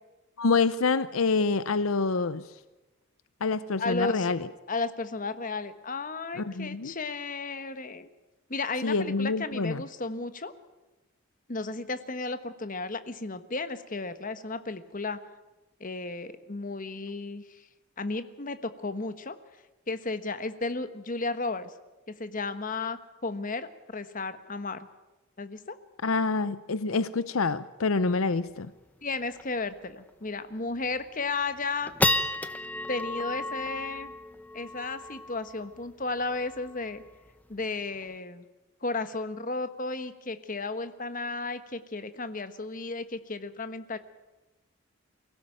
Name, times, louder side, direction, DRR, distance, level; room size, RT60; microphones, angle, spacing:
voice 1, 0.4-2.4 3.4-4.5 6.4-6.9 8.8-9.8 26.0-28.7, left 4 dB, 80° left, 15 dB, 0.7 m, -27 dB
voice 2, 3.8-4.3 4.7-8.1 8.5-10.5 11.5-15.2 15.8-17.6 18.0-19.4 19.9-21.7 22.1-24.9 25.4-25.8 29.0-31.9 32.9-34.1 34.5-37.0 37.5-38.4 38.8-44.0, left 3 dB, 40° left, 11 dB, 1.3 m, -34 dB
sound 1, 28.5-28.6 28.9-29.0 29.4-29.6 30.1-30.2 30.7-31.1 31.5-38.1, left 2 dB, 10° left, 0.8 m, -33 dB
23.5 x 17.0 x 9.1 m, 1.1 s
head